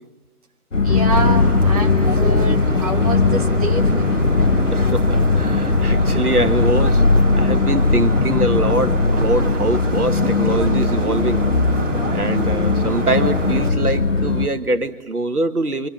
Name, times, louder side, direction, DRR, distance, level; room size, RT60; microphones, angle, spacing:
sound 1, 0.7-14.5, left 3 dB, 55° left, 1.6 m, -20 dB
voice 1, 0.8-4.4, right 3 dB, 25° right, -1 dB, 1.9 m, -27 dB
sound 2, 0.9-9.0, left 4 dB, 85° left, 1.1 m, -21 dB
sound 3, 1.1-13.7, right 2 dB, 55° right, 2.1 m, -27 dB
voice 2, 4.7-11.5 12.1-15.9, right 2 dB, 80° right, 8 dB, 1.9 m, -23 dB
28.5 x 26.5 x 7.7 m, 1.1 s
figure-of-eight pair, 160°, 45 cm